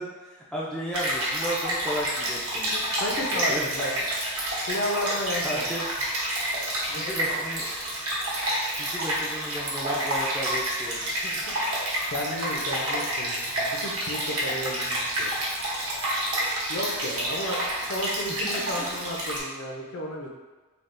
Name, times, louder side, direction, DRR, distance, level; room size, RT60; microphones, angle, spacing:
voice 1, 0.0-2.7 3.3-3.7 5.4-5.9 6.9-7.7 8.8-11.1 18.3-19.1, equal, 5° left, -7 dB, 0.3 m, -34 dB
Stream, 0.9-19.4, right 1 dB, 75° right, 0.9 m, -29 dB
voice 2, 2.7-3.9 4.6-5.6 6.9-7.2 11.2-15.3 16.7-20.3, left 1 dB, 55° left, -1 dB, 0.5 m, -33 dB
3.4 x 2.4 x 2.5 m, 1.3 s
head